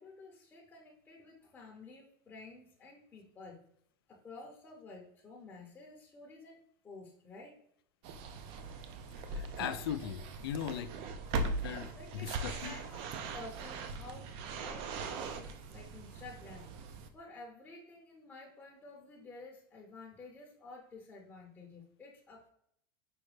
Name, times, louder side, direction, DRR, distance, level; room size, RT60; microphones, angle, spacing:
voice 1, 0.0-3.6 4.1-7.5 11.8-22.5, left 3 dB, 15° left, -2 dB, 0.6 m, -52 dB
sound 1, 8.0-17.1, right 3 dB, 50° right, 0.4 m, -40 dB
voice 2, 9.3-10.9 11.4-12.8, left 9 dB, 90° left, 12 dB, 0.4 m, -39 dB
4.8 x 2.1 x 3.1 m, 0.70 s
supercardioid pair, 135°, 12 cm